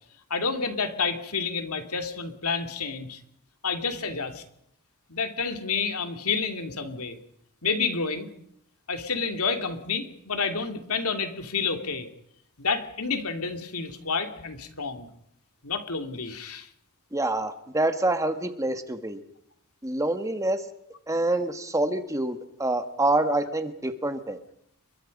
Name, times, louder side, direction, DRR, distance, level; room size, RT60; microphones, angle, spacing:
voice 1, 0.3-3.2 3.6-4.4 5.1-7.2 7.6-8.3 8.9-12.1 12.6-15.1 15.6-16.7, left 5 dB, 75° left, 6 dB, 2.8 m, -29 dB
voice 2, 17.1-19.2 19.8-20.6 21.1-24.4, right 2 dB, 15° right, 8 dB, 1.6 m, -26 dB
29.5 x 23.0 x 5.4 m, 0.72 s
head